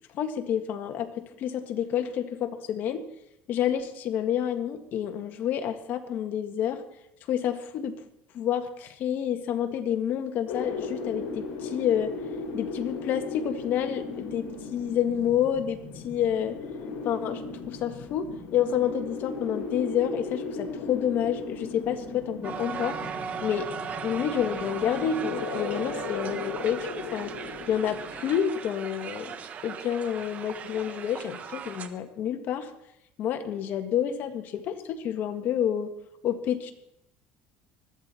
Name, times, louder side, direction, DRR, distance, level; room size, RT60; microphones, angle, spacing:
voice 1, 0.1-3.0 3.5-6.8 7.3-8.0 8.3-12.1 12.5-16.6 17.0-17.4 17.7-23.0 23.4-23.7 24.0-27.3 27.7-29.4 29.6-32.7 33.2-35.9 36.2-36.7, left 9 dB, 55° left, 6 dB, 1.8 m, -29 dB
sound 1, 10.5-28.3, left 4 dB, 75° left, 4.4 m, -37 dB
Crowd, 22.4-31.9, right 7 dB, 40° right, 1.3 m, -37 dB
21.0 x 14.0 x 4.4 m, 0.81 s
cardioid pair, 135°, 4 cm